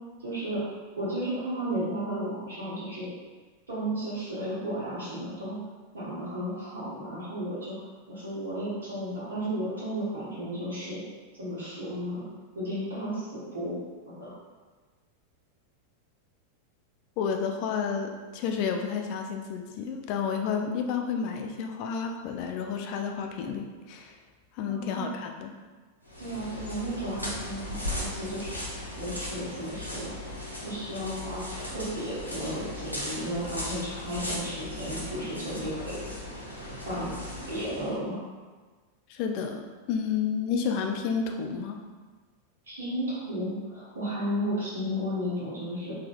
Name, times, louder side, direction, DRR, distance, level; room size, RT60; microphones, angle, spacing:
voice 1, 0.2-0.6 1.0-3.1 3.7-5.6 5.9-7.8 8.1-11.0 11.3-12.3 12.5-13.7 14.1-14.3 24.6-25.1 26.2-28.7 29.0-30.1 30.6-36.1 36.8-37.2 37.5-38.2 42.7-46.0, equal, 65° right, -10 dB, 1.0 m, -33 dB
voice 2, 17.2-24.2 24.5-25.5 39.1-41.8, left 6 dB, 45° left, 4 dB, 0.3 m, -31 dB
sound 1, 26.0-38.0, left 1 dB, 90° left, 0.7 m, -37 dB
3.6 x 2.7 x 2.4 m, 1.4 s
figure-of-eight pair, 90°, 0 cm